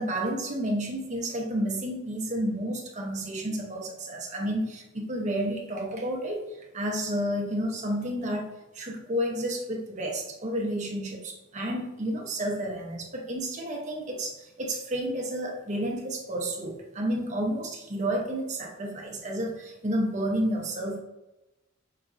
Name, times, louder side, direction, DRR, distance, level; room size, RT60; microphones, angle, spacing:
voice 1, 0.0-6.4 6.7-21.0, right 1 dB, 35° right, -1 dB, 0.8 m, -31 dB
5.7 x 2.7 x 2.4 m, 0.97 s
head